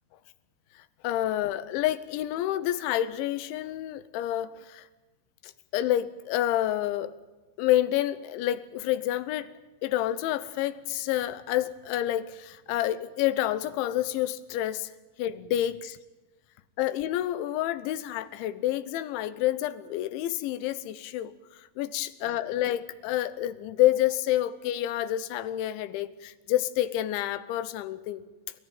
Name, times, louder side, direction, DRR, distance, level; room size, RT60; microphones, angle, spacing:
voice 1, 1.0-4.9 5.4-7.1 7.6-9.5 9.8-14.9 15.2-16.0 16.8-21.3 21.6-28.2, left 13 dB, 85° left, 14 dB, 3.3 m, -28 dB
29.0 x 14.0 x 9.3 m, 1.2 s
omnidirectional pair, 5.3 m